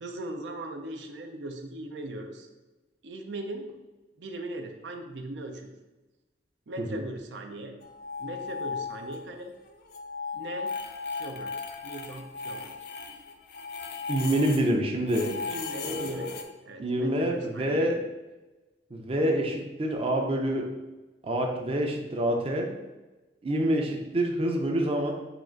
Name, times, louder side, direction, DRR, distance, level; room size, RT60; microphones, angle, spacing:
voice 1, 0.0-2.5 3.0-3.7 4.2-5.7 6.7-7.7 8.2-9.5 10.3-10.7 11.1-11.5 11.8-12.7 15.5-16.3 16.6-17.9, right 1 dB, 80° right, 5 dB, 0.5 m, -39 dB
sound 1, 7.8-9.4 9.7-14.7 15.1-16.4, left 4 dB, 60° left, 0.5 m, -37 dB
voice 2, 14.1-15.3 15.8-16.2 16.8-17.9 18.9-20.7 21.2-22.8 23.4-25.1, right 1 dB, 35° right, 2 dB, 0.5 m, -27 dB
4.8 x 2.4 x 4.4 m, 1.1 s
head